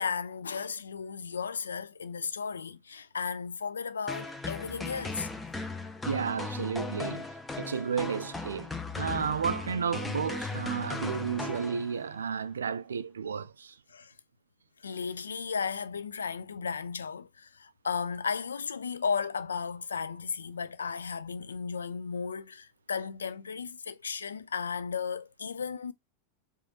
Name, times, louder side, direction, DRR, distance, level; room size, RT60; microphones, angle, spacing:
voice 1, 0.0-5.3 13.9-14.1 14.8-25.9, left 6 dB, 70° left, 0.3 m, -35 dB
sound 1, 4.1-12.2, left 3 dB, 10° left, 0.6 m, -37 dB
voice 2, 6.1-7.3 7.6-13.8, right 6 dB, 70° right, 0.3 m, -32 dB
4.8 x 2.6 x 2.8 m
figure-of-eight pair, 90°, 0 cm